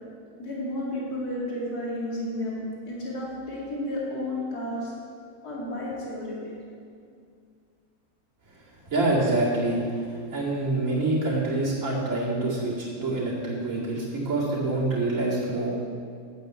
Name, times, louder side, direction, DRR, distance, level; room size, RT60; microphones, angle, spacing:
voice 1, 0.4-4.9 5.4-6.6, left 1 dB, 85° left, -5 dB, 2.7 m, -32 dB
voice 2, 8.9-9.8 10.3-15.7, right 2 dB, 55° right, -8 dB, 2.7 m, -26 dB
9.2 x 8.4 x 8.1 m, 2.2 s
omnidirectional pair, 1.6 m